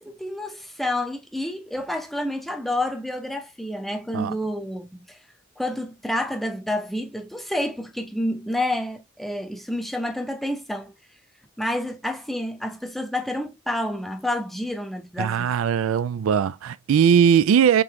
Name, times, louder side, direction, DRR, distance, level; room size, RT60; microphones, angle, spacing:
voice 1, 0.0-5.2 5.6-10.9 11.6-15.5, left 1 dB, ahead, 0.6 m, -29 dB
voice 2, 15.2-17.8, right 8 dB, 80° right, 0.3 m, -19 dB
3.8 x 3.8 x 2.8 m
head